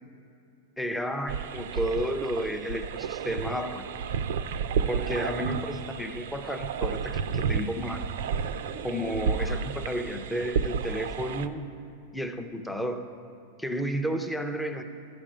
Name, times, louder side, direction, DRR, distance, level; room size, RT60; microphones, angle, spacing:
voice 1, 0.8-3.9 4.9-8.1 8.8-11.7 12.1-13.1 13.6-14.8, equal, ahead, 6 dB, 0.5 m, -32 dB
sound 1, 1.3-11.5, right 6 dB, 70° right, 0.5 m, -31 dB
12.5 x 5.1 x 8.8 m, 2.8 s
supercardioid pair, 165°, 0 cm